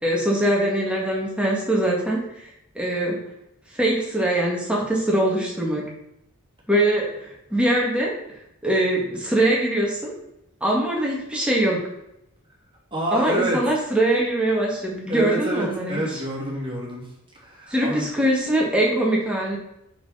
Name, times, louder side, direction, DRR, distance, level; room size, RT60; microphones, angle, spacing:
voice 1, 0.0-2.2 2.8-3.2 3.7-5.8 6.7-8.1 8.6-10.1 10.6-11.8 13.1-16.2 17.7-19.6, right 1 dB, 5° right, -4 dB, 2.0 m, -22 dB
voice 2, 12.9-13.6 15.1-17.1 17.4-18.1, right 1 dB, 25° right, -4 dB, 2.6 m, -27 dB
6.6 x 6.0 x 5.7 m, 0.81 s
head